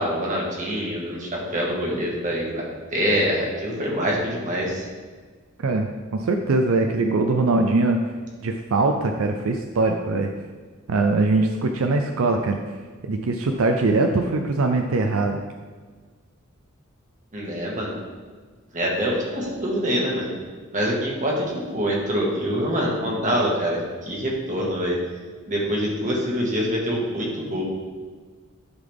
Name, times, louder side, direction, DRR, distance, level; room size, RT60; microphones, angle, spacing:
voice 1, 0.0-4.9 17.3-17.9 18.7-20.3 20.7-25.0 25.5-27.6, equal, 35° right, -3 dB, 1.7 m, -25 dB
voice 2, 5.6-8.0 8.4-10.3 10.9-12.6 13.0-15.4, right 3 dB, 80° right, 4 dB, 0.5 m, -22 dB
11.5 x 3.9 x 3.5 m, 1.5 s
head